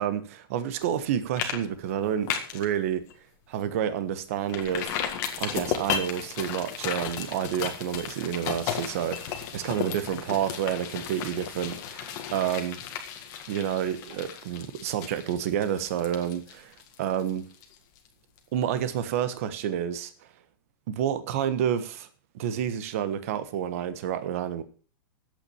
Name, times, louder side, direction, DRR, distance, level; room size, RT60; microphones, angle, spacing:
voice 1, 0.0-3.0 3.5-5.0 5.4-12.8 13.5-16.7 17.0-17.4 18.5-20.1 20.9-22.1 22.3-24.6, right 9 dB, 35° right, 1.3 m, -29 dB
sound 1, 0.8-1.1 1.4-1.6 1.9-2.7 3.1-3.2 3.6-3.7 4.5-18.1 18.4-18.5, left 9 dB, 25° left, 1.8 m, -34 dB
12.0 x 8.8 x 7.0 m
supercardioid pair, 180°, 13 cm